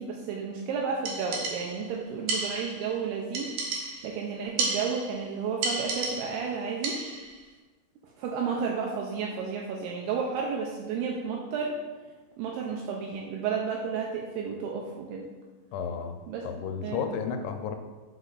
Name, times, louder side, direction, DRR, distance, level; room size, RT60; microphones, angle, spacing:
voice 1, 0.0-3.5 4.0-7.0 8.0-11.7 12.4-15.3 16.3-16.5 16.8-17.0, right 5 dB, 90° right, 0 dB, 2.2 m, -32 dB
sound 1, 1.1-1.9 2.3-2.9 3.3-4.2 4.6-5.2 5.6-6.5 6.8-7.3, right 3 dB, 75° right, 2.0 m, -32 dB
voice 2, 15.7-16.2 16.4-17.8, left 6 dB, 85° left, 6 dB, 2.9 m, -32 dB
6.1 x 5.4 x 4.0 m, 1.3 s
omnidirectional pair, 5.2 m